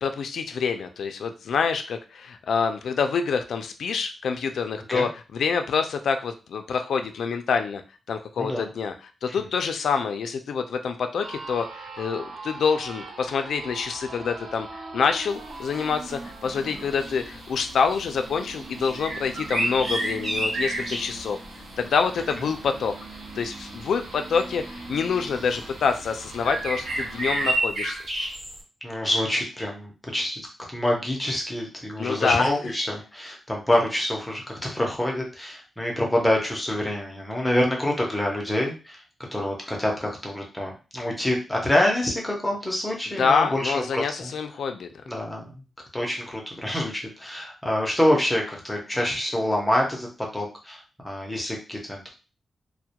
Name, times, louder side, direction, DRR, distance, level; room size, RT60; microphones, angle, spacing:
voice 1, 0.0-7.8 8.1-8.9 9.2-21.4 21.8-22.9 23.4-28.0 32.0-32.5 43.2-44.9, left 5 dB, 80° left, 7 dB, 0.3 m, -26 dB
voice 2, 8.4-8.7 28.8-30.4 30.7-39.0 39.3-44.3 45.1-45.4 45.9-52.1, left 1 dB, 10° left, -1 dB, 0.5 m, -26 dB
sound 1, 11.2-27.5, right 3 dB, 80° right, 0.7 m, -41 dB
sound 2, 15.7-15.8 16.2-16.4 16.8-17.5 17.9-18.1 18.8-21.1 23.3-23.4 24.3-24.4 25.0-25.6 26.4-28.6, right 1 dB, 55° right, 1.0 m, -29 dB
2.2 x 2.1 x 2.8 m, 0.32 s
wide cardioid pair, 170°, 0 cm